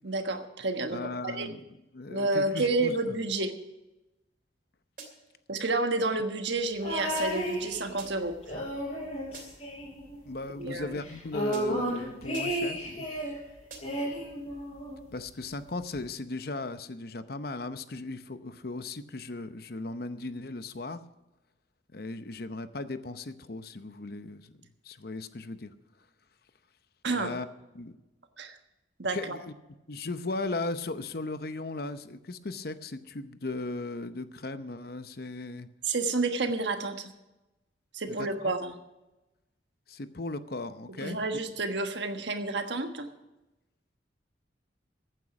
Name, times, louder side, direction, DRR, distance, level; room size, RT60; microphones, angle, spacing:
voice 1, 0.0-1.5 2.1-3.5 5.5-8.3 10.6-11.0 27.0-27.4 28.4-28.6 29.0-29.4 35.8-37.1 37.9-38.7 41.0-43.1, right 3 dB, 70° right, 6 dB, 1.4 m, -30 dB
voice 2, 0.9-1.6 1.9-3.2 10.2-13.1 15.1-21.0 21.9-24.6 24.8-25.7 27.1-27.5 27.7-28.0 29.1-29.5 29.9-35.7 38.1-38.3 39.9-41.2, left 2 dB, 50° left, 11 dB, 0.7 m, -37 dB
sound 1, 5.0-5.4 7.2-7.6 8.0-8.4 9.3-9.8 11.5-11.9 12.3-12.8 13.7-14.1, right 4 dB, 45° right, 2.7 m, -48 dB
sound 2, 6.8-8.1 8.4-10.3 10.6-10.7 11.0-13.4 13.8-15.1 15.9-16.0, equal, 30° left, 6.2 m, -33 dB
15.0 x 9.2 x 6.0 m, 1.0 s
head